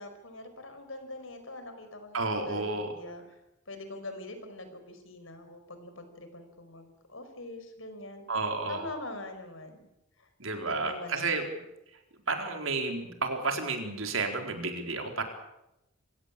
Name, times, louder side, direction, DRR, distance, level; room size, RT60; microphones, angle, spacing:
voice 1, 0.0-2.2 2.5-3.2 3.7-8.2 8.7-9.8 10.6-11.6, left 2 dB, 70° left, 8 dB, 5.1 m, -43 dB
voice 2, 2.1-2.9 8.3-8.8 10.4-11.5 12.3-15.2, right 3 dB, 75° right, 4 dB, 4.3 m, -31 dB
27.0 x 17.0 x 8.6 m, 0.89 s
head